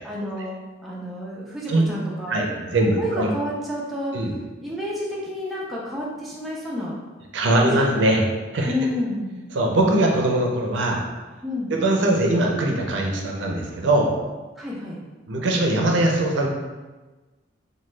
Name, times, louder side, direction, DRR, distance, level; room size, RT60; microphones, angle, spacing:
voice 1, 0.0-0.6 0.8-2.4 3.0-4.1 4.6-7.0 7.5-8.0 8.6-9.4 11.4-11.7 14.6-15.0, left 1 dB, ahead, -6 dB, 0.4 m, -30 dB
voice 2, 2.3-3.3 4.1-4.3 7.3-8.2 8.5-8.7 9.5-11.0 11.7-14.1 15.3-16.5, right 1 dB, 60° right, 0 dB, 0.5 m, -21 dB
3.0 x 2.2 x 3.2 m, 1.2 s
head